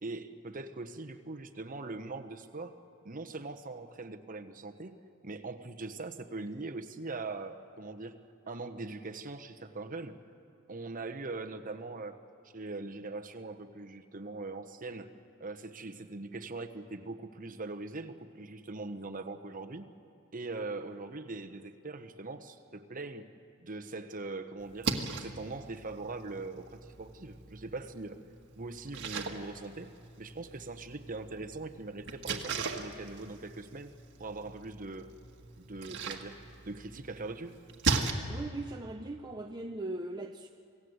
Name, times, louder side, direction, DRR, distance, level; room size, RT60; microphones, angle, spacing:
voice 1, 0.0-2.8 3.0-5.0 5.2-8.2 8.5-10.2 10.7-12.2 12.5-15.1 15.4-19.9 20.3-23.3 23.6-28.2 28.5-35.1 35.6-37.6, right 3 dB, 40° right, 6 dB, 1.1 m, -41 dB
Splash splatter, 24.6-38.1, right 4 dB, 55° right, 1.7 m, -39 dB
voice 2, 38.3-40.5, right 2 dB, 20° right, 3 dB, 0.7 m, -39 dB
28.0 x 18.0 x 8.1 m, 2.4 s
head